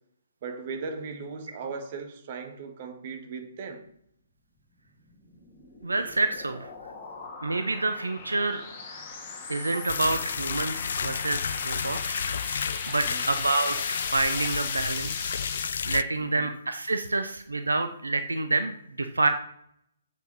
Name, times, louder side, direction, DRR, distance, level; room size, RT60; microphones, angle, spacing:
voice 1, 0.4-3.9 13.0-13.2 16.2-16.5, right 4 dB, 40° right, 1.7 m, -38 dB
sound 1, 5.1-15.7, left 4 dB, 30° left, 2.0 m, -39 dB
voice 2, 5.8-6.7 7.4-8.6 8.9-9.0 9.5-15.3 15.9-19.3, right 3 dB, 75° right, 0.8 m, -28 dB
sound 2, 9.9-16.0, left 7 dB, 55° left, 0.4 m, -31 dB
8.1 x 7.4 x 5.5 m
figure-of-eight pair, 130°, 0 cm